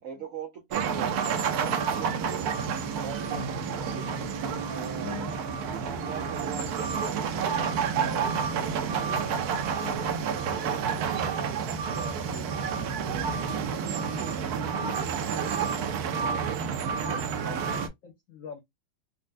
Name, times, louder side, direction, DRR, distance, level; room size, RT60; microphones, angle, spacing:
voice 1, 0.0-2.6 3.0-4.3 4.7-5.5 5.8-9.8 10.5-17.9, right 6 dB, 90° right, 0.7 m, -43 dB
sound 1, 0.7-17.9, right 6 dB, 70° right, 1.0 m, -29 dB
voice 2, 14.8-15.1 15.8-16.1 17.0-17.6 18.0-18.6, left 7 dB, 70° left, 0.7 m, -42 dB
4.3 x 2.2 x 2.4 m
omnidirectional pair, 2.1 m